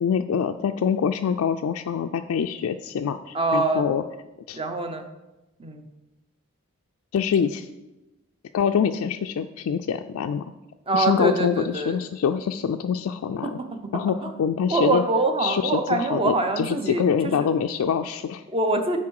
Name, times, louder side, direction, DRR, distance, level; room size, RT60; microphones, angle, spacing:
voice 1, 0.0-4.0 4.5-4.6 7.1-7.7 8.5-10.4 10.9-13.6 13.9-15.0 15.4-18.4, left 7 dB, 70° left, 6 dB, 0.3 m, -25 dB
voice 2, 3.3-3.8 4.5-5.0 5.6-5.8 10.9-12.0 13.6-13.8 14.2-14.3 14.7-17.5 18.5-19.0, right 2 dB, 25° right, 7 dB, 0.7 m, -24 dB
9.6 x 4.4 x 4.7 m, 1.0 s
head